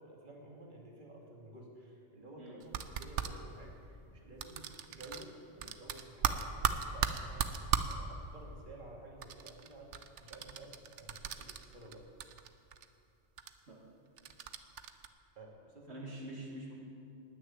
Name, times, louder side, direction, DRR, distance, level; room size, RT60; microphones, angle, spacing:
voice 1, 0.0-12.0 15.4-16.1, right 1 dB, 45° right, -2 dB, 2.3 m, -53 dB
sound 1, 2.6-3.3 4.4-5.3 5.6-7.9 9.2-11.9 12.2-12.9 13.4-13.5 14.2-15.1, right 8 dB, 90° right, 1.0 m, -36 dB
voice 2, 15.9-16.7, right 1 dB, 70° right, -3 dB, 2.0 m, -45 dB
16.5 x 6.4 x 9.9 m, 2.6 s
omnidirectional pair, 1.2 m